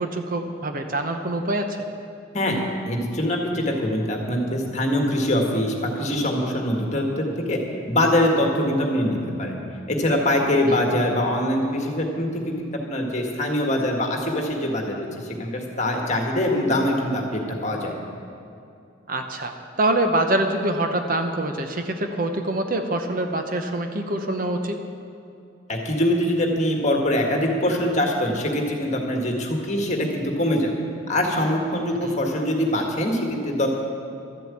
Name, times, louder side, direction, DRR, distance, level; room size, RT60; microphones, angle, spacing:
voice 1, 0.0-1.7 19.1-24.8 32.0-32.2, right 1 dB, 45° right, 6 dB, 0.8 m, -25 dB
voice 2, 2.9-7.6 7.9-9.6 9.9-17.9 25.7-30.7 31.1-33.7, left 1 dB, 35° left, 1 dB, 1.7 m, -23 dB
13.0 x 7.7 x 8.6 m, 2.6 s
head